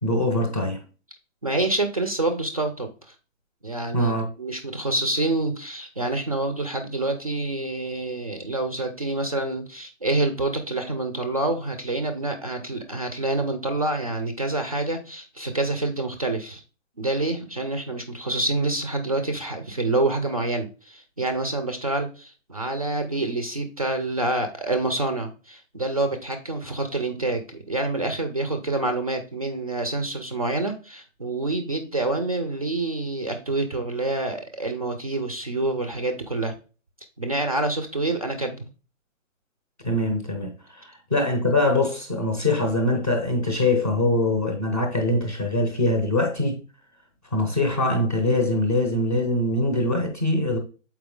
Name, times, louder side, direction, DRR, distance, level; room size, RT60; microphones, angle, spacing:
voice 1, 0.0-0.8 3.9-4.3 39.8-46.6 47.3-50.6, left 1 dB, 15° left, 0.7 m, -23 dB
voice 2, 1.4-3.1 3.6-4.1 4.4-16.6 17.0-36.5 37.2-38.7, right 2 dB, 25° right, 0.5 m, -27 dB
7.0 x 4.7 x 3.6 m
hypercardioid pair, 160°, 41 cm